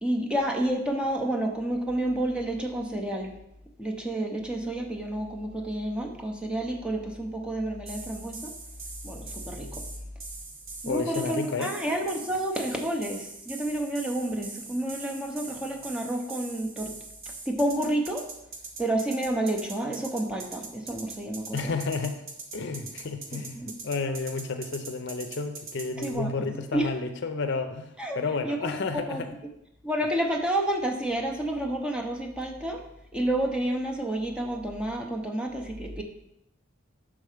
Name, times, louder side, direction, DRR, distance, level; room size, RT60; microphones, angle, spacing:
voice 1, 0.0-3.3 3.8-8.5 9.0-9.8 10.8-16.9 17.5-18.2 18.8-21.7 23.3-23.7 26.0-26.9 28.0-28.2 28.4-29.5 29.8-32.8 33.1-36.0, right 1 dB, 5° right, 1 dB, 0.6 m, -30 dB
sound 1, 7.9-26.2, right 3 dB, 45° right, 0.9 m, -42 dB
voice 2, 10.9-11.8 21.5-22.2 22.5-29.3, left 4 dB, 60° left, 7 dB, 0.5 m, -31 dB
6.7 x 3.7 x 4.9 m, 0.83 s
head